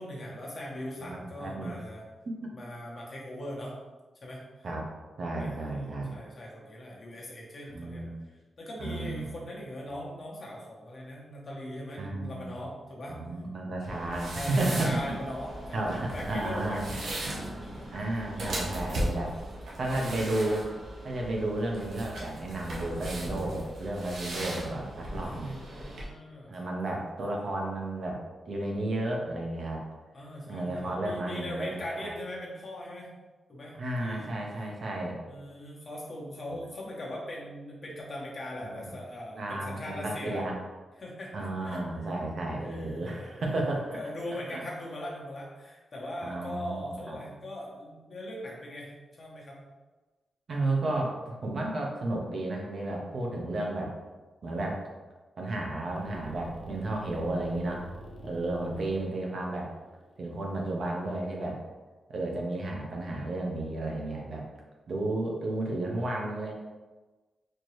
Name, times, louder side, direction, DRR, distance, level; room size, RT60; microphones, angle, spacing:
voice 1, 0.0-2.0 2.5-3.7 4.2-4.4 5.4-8.0 8.6-13.2 14.3-17.3 17.6-17.9 18.3-18.6 20.0-20.3 25.2-27.0 30.1-33.1 33.5-34.5 35.3-40.4 41.0-41.8 42.6-49.7, left 1 dB, 40° left, -4 dB, 1.0 m, -40 dB
voice 2, 1.0-1.8 2.3-2.5 4.6-4.8 5.2-6.2 7.7-8.1 8.8-9.2 12.0-12.5 13.1-15.0 15.7-17.1 17.9-19.3 19.8-20.7 21.0-25.6 26.5-29.8 30.5-32.1 33.8-35.2 38.6-38.9 39.4-40.5 41.3-44.0 44.5-44.6 46.2-47.2 50.5-53.9 54.4-54.8 55.4-57.9 58.2-59.7 60.2-61.6 62.1-64.5 64.9-66.5, right 2 dB, 55° right, -1 dB, 0.8 m, -32 dB
sound 1, 13.8-26.0, right 1 dB, 80° right, 1.0 m, -38 dB
sound 2, 55.9-61.1, right 1 dB, 75° left, 0.7 m, -47 dB
4.3 x 2.9 x 3.1 m, 1.2 s
wide cardioid pair, 135°, 0 cm